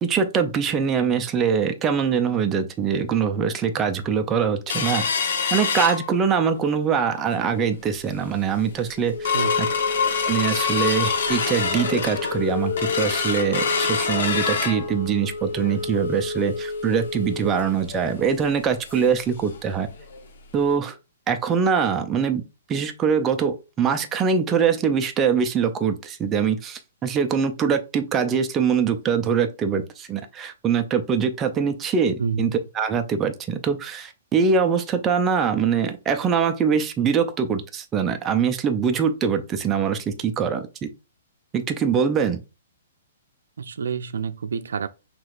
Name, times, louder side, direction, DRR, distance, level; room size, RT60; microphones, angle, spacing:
voice 1, 0.0-5.1 5.5-9.7 10.2-19.9 20.5-21.0 21.3-22.4 22.7-40.9 41.5-42.4, right 6 dB, 15° right, 0.4 m, -23 dB
sound 1, 4.7-6.6 7.0-7.1 7.4-7.8 8.2-8.3 8.7-19.2 19.5-19.6 20.0-20.2 20.7-20.8, left 5 dB, 60° left, 0.9 m, -26 dB
voice 2, 9.3-9.7 32.2-32.5 43.6-44.9, right 6 dB, 85° right, 0.4 m, -28 dB
5.9 x 3.0 x 2.4 m
hypercardioid pair, 170°, 0 cm